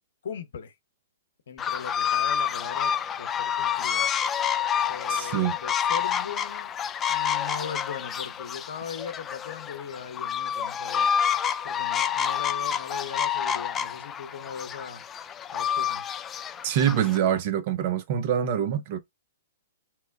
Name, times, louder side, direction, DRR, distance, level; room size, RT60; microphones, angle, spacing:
voice 1, 0.2-0.7 1.5-4.1 4.9-6.7 7.1-11.1 11.6-15.0 15.5-16.0, left 7 dB, 70° left, 0.8 m, -39 dB
sound 1, 1.6-17.2, left 8 dB, 20° left, 0.3 m, -28 dB
voice 2, 5.1-5.6 16.6-19.0, right 9 dB, 50° right, 0.6 m, -25 dB
3.0 x 2.2 x 3.4 m
hypercardioid pair, 120°, 0 cm